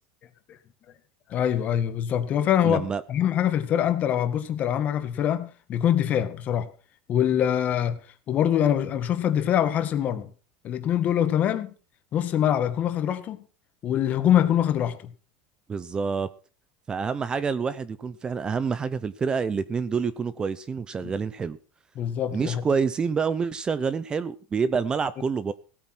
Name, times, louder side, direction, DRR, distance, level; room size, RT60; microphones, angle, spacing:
voice 1, 1.3-6.7 7.1-8.0 8.3-10.3 10.6-11.7 12.1-13.4 13.8-15.1 21.0-21.1 22.0-22.6, left 10 dB, 35° left, 10 dB, 1.8 m, -24 dB
voice 2, 2.6-3.0 15.7-16.3 16.9-21.6 22.3-25.5, right 5 dB, 20° right, 16 dB, 0.7 m, -27 dB
17.5 x 8.7 x 6.1 m, 0.37 s
supercardioid pair, 145°, 4 cm